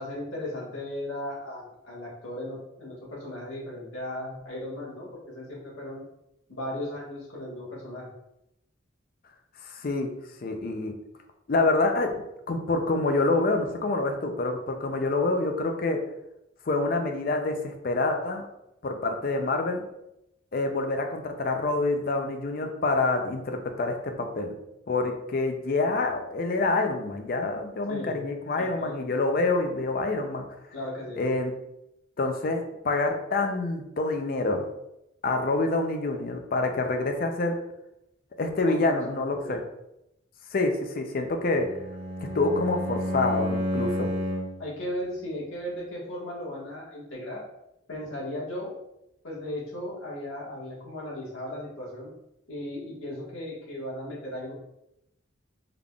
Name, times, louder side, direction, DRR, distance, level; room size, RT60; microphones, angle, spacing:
voice 1, 0.0-6.0 6.5-8.1 27.9-28.2 28.6-29.0 30.7-31.3 38.7-39.6 44.6-47.4 47.9-48.7 49.2-52.1 52.5-54.5, left 1 dB, 80° left, -5 dB, 1.5 m, -36 dB
voice 2, 9.7-10.1 10.4-10.9 11.5-16.0 16.6-18.4 18.8-19.8 20.5-24.5 24.9-30.4 31.2-31.5 32.2-34.7 35.2-37.5 38.4-39.6 40.5-41.7 42.3-44.1, left 2 dB, 45° left, 5 dB, 0.5 m, -27 dB
Bowed string instrument, 41.5-44.7, equal, 30° right, 0.6 m, -30 dB
3.8 x 3.4 x 2.3 m, 0.85 s
head